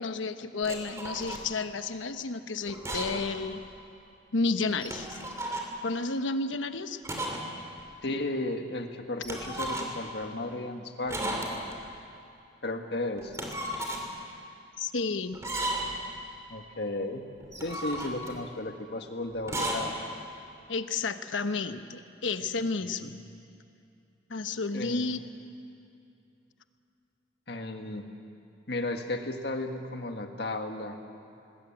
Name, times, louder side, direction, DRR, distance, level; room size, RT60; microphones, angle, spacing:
voice 1, 0.0-3.6 4.3-5.2 5.8-7.0 14.8-15.4 20.7-23.2 24.3-25.2, left 3 dB, 85° left, 9 dB, 1.1 m, -31 dB
sound 1, 0.6-1.5 2.7-3.3 3.6-3.7 4.7-5.7 7.0-7.5 7.8-7.9 9.2-10.1 11.1-11.8 13.2-14.1 15.3-16.0 17.4-18.4 19.4-19.9, right 1 dB, 15° right, 2.8 m, -34 dB
voice 2, 8.0-11.4 12.6-13.3 16.5-17.3 17.6-19.9 23.0-23.4 24.7-25.2 27.5-28.1 28.7-31.0, left 2 dB, 60° left, 5 dB, 1.8 m, -34 dB
21.0 x 20.5 x 8.9 m, 2.6 s
head